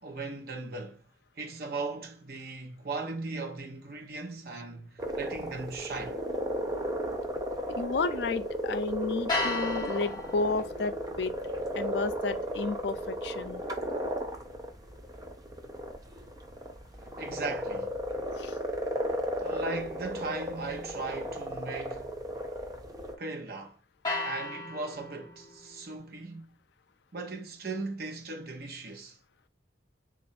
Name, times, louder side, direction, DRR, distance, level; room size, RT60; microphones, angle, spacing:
voice 1, 0.0-1.0 1.4-6.2 17.2-17.9 19.4-22.1 23.2-23.8 24.2-26.5 27.1-29.2, right 3 dB, 55° right, 0.8 m, -38 dB
sound 1, 5.0-23.1, equal, 20° right, 0.5 m, -35 dB
voice 2, 7.8-11.3 11.7-13.6 18.4-18.6, left 3 dB, 65° left, 0.4 m, -32 dB
sound 2, 9.3-15.4 24.0-26.0, left 2 dB, 25° left, 1.3 m, -38 dB
3.2 x 2.5 x 4.1 m
head